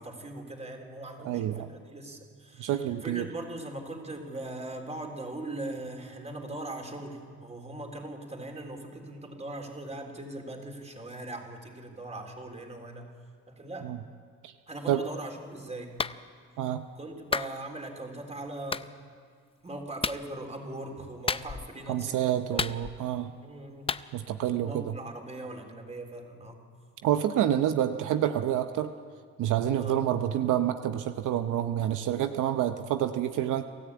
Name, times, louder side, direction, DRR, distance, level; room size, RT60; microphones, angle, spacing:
voice 1, 0.0-13.1 13.5-13.9 14.7-16.0 17.0-18.9 19.6-22.6 23.4-23.9 24.6-26.6 29.7-30.1, right 2 dB, 20° right, 3 dB, 3.7 m, -40 dB
voice 2, 1.2-1.7 2.6-3.3 13.8-14.0 14.4-14.5 14.9-15.0 16.6-16.8 21.9-23.3 24.1-24.8 27.0-28.9 29.4-33.6, right 11 dB, 80° right, 8 dB, 0.8 m, -28 dB
Clapping, 16.0-16.2 17.3-17.5 18.7-18.9 20.0-20.2 21.3-21.7 22.6-23.1 23.9-24.1, left 5 dB, 20° left, 0.5 m, -31 dB
26.5 x 13.5 x 8.5 m, 2.1 s
cardioid pair, 90°, 30 cm